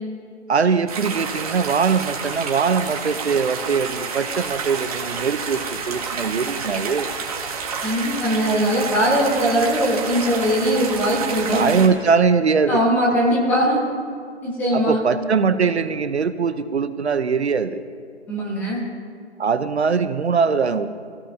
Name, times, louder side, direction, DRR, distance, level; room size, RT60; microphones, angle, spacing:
voice 1, 0.5-7.1 11.5-12.8 14.7-17.8 19.4-20.9, right 5 dB, 70° right, 11 dB, 1.0 m, -21 dB
sound 1, 0.9-11.9, right 5 dB, 30° right, 2.1 m, -29 dB
voice 2, 7.8-11.7 12.7-13.8 14.4-15.0 18.3-18.8, equal, 5° left, -3 dB, 1.2 m, -20 dB
26.5 x 16.5 x 2.9 m, 2.2 s
hypercardioid pair, 165°, 34 cm